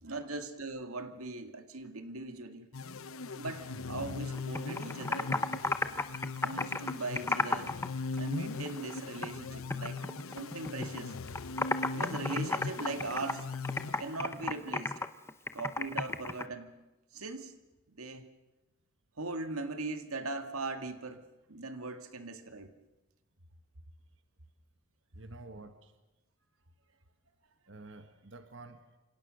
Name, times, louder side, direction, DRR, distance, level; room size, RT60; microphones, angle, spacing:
voice 1, 0.0-2.7 3.3-5.5 6.4-7.8 8.1-10.1 10.4-11.2 11.9-13.5 14.0-15.0 15.5-16.8 17.1-17.5 17.9-18.3 19.2-22.8, right 3 dB, 90° right, 8 dB, 2.1 m, -40 dB
sound 1, 2.7-14.5, left 3 dB, 75° left, 0.9 m, -40 dB
Computer keyboard, 4.3-7.9 8.2-9.4 9.7-11.0 11.3-16.4, left 2 dB, 10° left, 0.8 m, -33 dB
voice 2, 25.1-25.9 27.7-28.8, right 2 dB, 55° right, 8 dB, 1.6 m, -50 dB
28.0 x 26.5 x 6.5 m, 1.1 s
head